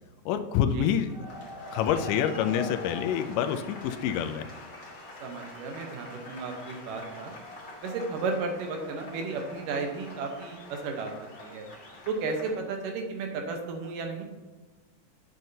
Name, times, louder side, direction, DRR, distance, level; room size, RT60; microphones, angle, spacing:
voice 1, 0.3-1.1 1.7-4.5, left 9 dB, 85° left, 8 dB, 2.2 m, -27 dB
sound 1, 1.0-12.6, left 2 dB, 65° left, 0.5 m, -44 dB
voice 2, 5.2-7.3 7.8-11.1 11.4-11.7 12.1-14.2, right 4 dB, 80° right, 3 dB, 2.7 m, -33 dB
9.1 x 6.7 x 2.8 m, 1.3 s
omnidirectional pair, 3.7 m